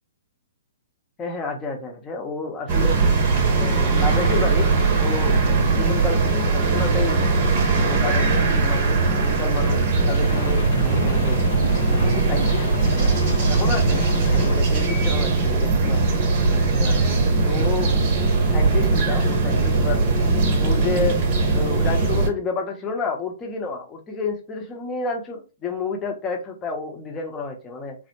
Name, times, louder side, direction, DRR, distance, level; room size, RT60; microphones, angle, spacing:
voice 1, 1.2-3.0 3.6-4.7 5.0-7.3 7.7-11.6 11.9-12.7 12.9-13.1 13.5-14.0 14.3-16.1 16.5-17.1 17.4-18.0 18.5-20.0 20.6-21.2 21.5-28.0, left 4 dB, 20° left, 2 dB, 0.8 m, -30 dB
sound 1, 2.7-22.3, right 3 dB, 40° right, 0.8 m, -20 dB
sound 2, 10.2-14.7, left 1 dB, 65° left, 1.0 m, -32 dB
3.3 x 2.0 x 3.0 m, 0.31 s
figure-of-eight pair, 120°, 0 cm